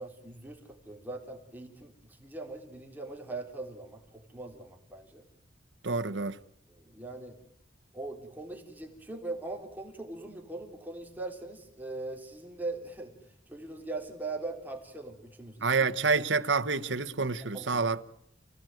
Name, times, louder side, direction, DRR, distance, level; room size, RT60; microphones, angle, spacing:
voice 1, 0.0-1.9 2.2-5.2 6.7-7.4 7.9-13.1 13.5-16.2 17.5-17.9, right 2 dB, 10° right, 4.0 m, -41 dB
voice 2, 5.8-6.4 15.6-18.0, right 4 dB, 75° right, 1.2 m, -28 dB
29.5 x 17.5 x 9.4 m
head